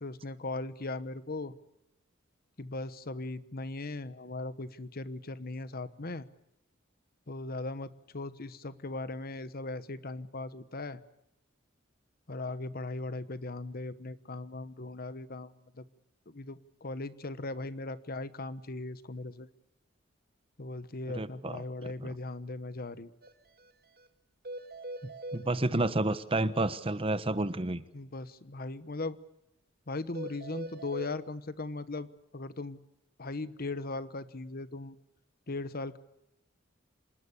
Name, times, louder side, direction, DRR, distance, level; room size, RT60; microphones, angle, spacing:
voice 1, 0.0-1.5 2.6-6.3 7.3-11.0 12.3-15.8 16.3-19.5 20.6-23.1 27.9-29.2 29.9-32.8 33.2-35.0 35.5-36.0, left 2 dB, 50° left, 14 dB, 1.2 m, -38 dB
voice 2, 21.1-21.6 25.3-27.8, right 2 dB, 30° right, 14 dB, 1.1 m, -30 dB
sound 1, 23.2-23.3 23.6-23.7 24.0-24.1 24.4-25.4 30.1-31.1, right 1 dB, 50° right, 2.1 m, -41 dB
27.0 x 19.5 x 8.4 m, 0.86 s
head